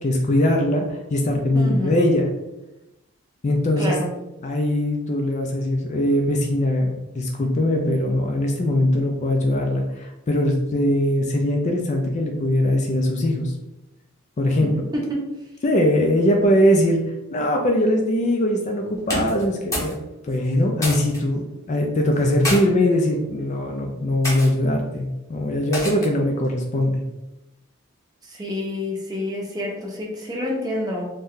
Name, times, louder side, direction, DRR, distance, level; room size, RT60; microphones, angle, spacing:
voice 1, 0.0-2.3 3.4-4.0 4.4-13.5 14.4-14.7 15.6-17.0 17.3-20.0 20.3-27.0, left 1 dB, 35° left, 1 dB, 0.3 m, -21 dB
voice 2, 1.5-2.0 3.8-4.1 14.6-15.3 16.6-16.8 28.2-31.1, left 1 dB, 20° right, -2 dB, 0.6 m, -28 dB
sound 1, 19.0-20.0 20.3-21.2 22.1-22.6 23.4-23.6 24.2-24.5 25.7-26.2, left 1 dB, 15° left, 0.8 m, -28 dB
2.6 x 2.2 x 3.6 m, 0.95 s
head